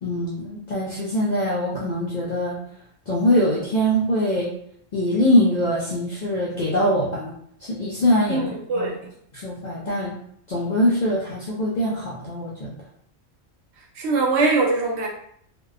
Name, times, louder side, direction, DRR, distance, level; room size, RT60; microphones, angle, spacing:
voice 1, 0.0-2.6 3.1-4.5 4.9-7.3 7.6-8.9 9.3-10.2 10.5-12.7, equal, 70° left, -5 dB, 0.4 m, -23 dB
voice 2, 8.3-9.0 14.0-15.1, right 3 dB, 65° right, 0 dB, 0.8 m, -22 dB
2.6 x 2.1 x 2.3 m, 0.67 s
omnidirectional pair, 1.3 m